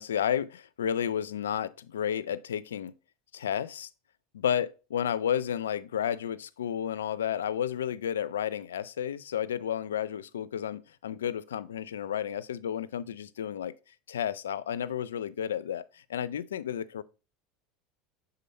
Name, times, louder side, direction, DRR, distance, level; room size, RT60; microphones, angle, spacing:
voice 1, 0.0-3.0 3.3-3.9 4.3-13.7 14.1-17.0, left 9 dB, 85° left, 0.4 m, -32 dB
6.8 x 4.0 x 4.1 m
hypercardioid pair, 85°, 0 cm